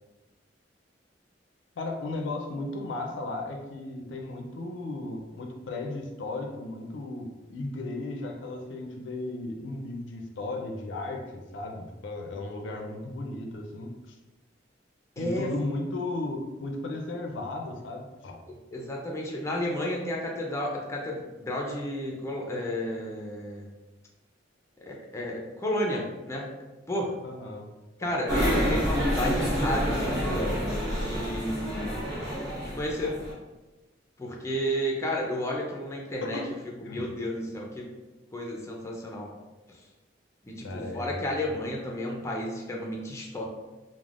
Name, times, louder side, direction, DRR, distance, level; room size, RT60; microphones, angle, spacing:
voice 1, 1.8-14.2 15.2-18.4 27.2-27.6 36.2-36.5 36.8-37.0 40.6-41.4, left 2 dB, 85° left, 3 dB, 0.4 m, -35 dB
voice 2, 15.2-15.5 18.5-23.7 24.8-26.5 26.9-27.1 28.0-30.5 30.9-32.0 32.6-33.2 34.2-36.4 36.8-37.9 38.3-39.3 40.4-43.4, equal, 15° left, -2 dB, 0.4 m, -32 dB
sound 1, 28.3-33.3, equal, 20° right, 1.1 m, -28 dB
3.3 x 2.1 x 2.4 m, 1.1 s
head